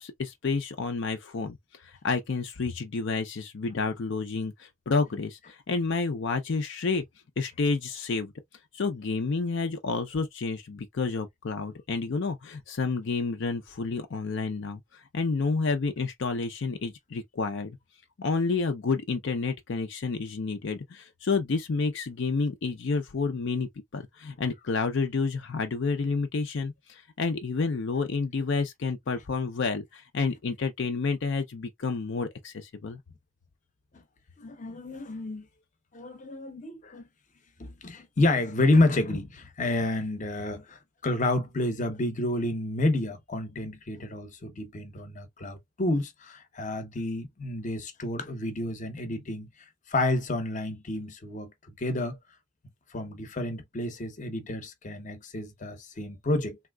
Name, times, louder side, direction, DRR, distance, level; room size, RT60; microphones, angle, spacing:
voice 1, 0.0-7.0 7.4-8.3 8.7-17.8 18.2-33.0, left 4 dB, 70° left, 0.5 m, -30 dB
voice 2, 34.4-35.4 35.9-37.1 37.6-49.5 49.9-52.2 52.9-56.6, left 2 dB, 40° left, 0.7 m, -29 dB
3.5 x 2.8 x 2.2 m
head